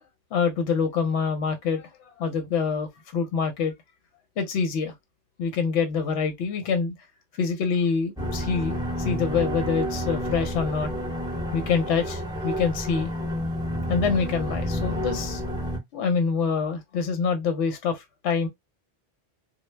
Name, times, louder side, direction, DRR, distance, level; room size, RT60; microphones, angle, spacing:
voice 1, 0.3-3.7 4.4-4.9 5.4-6.9 7.4-10.9 11.5-13.1 13.9-15.4 15.9-18.5, left 5 dB, 80° left, 0.9 m, -26 dB
sound 1, 8.2-15.8, equal, 5° right, 0.7 m, -30 dB
2.2 x 2.0 x 3.1 m
omnidirectional pair, 1.2 m